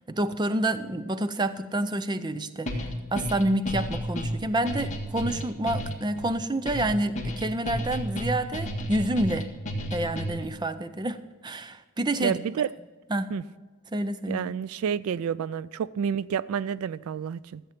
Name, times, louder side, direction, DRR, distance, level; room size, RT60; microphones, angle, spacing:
voice 1, 0.0-9.5 9.9-12.4 13.1-13.3 13.9-14.4, right 1 dB, 20° right, 0.5 m, -28 dB
sound 1, 2.7-10.6, equal, 30° left, 1.7 m, -32 dB
voice 2, 12.2-12.7 13.3-13.4 14.3-17.6, right 7 dB, 75° right, 0.3 m, -29 dB
14.0 x 8.0 x 5.8 m
head